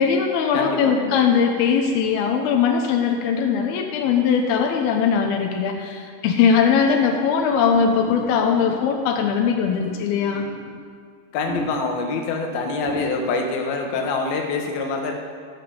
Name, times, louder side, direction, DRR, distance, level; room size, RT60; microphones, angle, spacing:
voice 1, 0.0-10.4, left 6 dB, 85° left, 2 dB, 2.2 m, -20 dB
voice 2, 0.5-1.3 11.3-15.1, left 4 dB, 70° left, 2 dB, 2.5 m, -26 dB
sound 1, 7.3-9.1 9.8-10.9 11.5-12.1 12.5-12.6 12.8-13.5 13.9-14.2, right 2 dB, 65° right, 4.9 m, -34 dB
15.0 x 6.0 x 7.1 m, 2.1 s
omnidirectional pair, 5.5 m